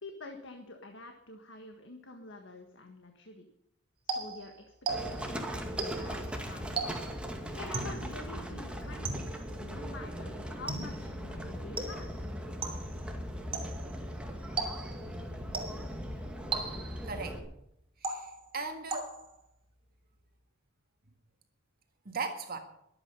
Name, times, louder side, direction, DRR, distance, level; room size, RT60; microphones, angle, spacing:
voice 1, 0.0-3.5 4.1-4.5 5.0-7.0 7.5-9.3 9.6-12.1, left 2 dB, 65° left, 4 dB, 1.6 m, -47 dB
sound 1, 4.1-5.4 5.8-6.2 6.8-7.3 7.7-8.1 9.0-9.5 10.7-11.1 11.8-12.2 12.6-13.0 13.5-13.9 14.6-15.1 15.5-16.0 16.5-17.1 18.0-18.5 18.9-19.4, right 4 dB, 30° right, 2.9 m, -37 dB
Livestock farm animals working animals, 4.9-17.4, equal, 5° right, 2.2 m, -39 dB
voice 2, 17.0-17.4 18.0-19.2 22.1-22.6, right 4 dB, 50° right, 5 dB, 1.7 m, -38 dB
22.5 x 8.9 x 5.4 m, 0.79 s
head